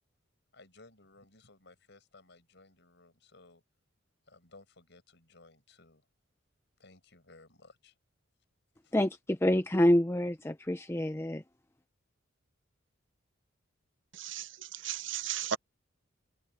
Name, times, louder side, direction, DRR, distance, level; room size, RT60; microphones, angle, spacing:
voice 1, 0.5-3.6 4.3-6.1 6.8-7.9 8.8-8.9, left 2 dB, 60° left, 7.4 m, -58 dB
voice 2, 8.9-11.4, left 1 dB, 10° left, 0.6 m, -27 dB
voice 3, 14.1-15.6, right 9 dB, 65° right, 0.8 m, -36 dB
head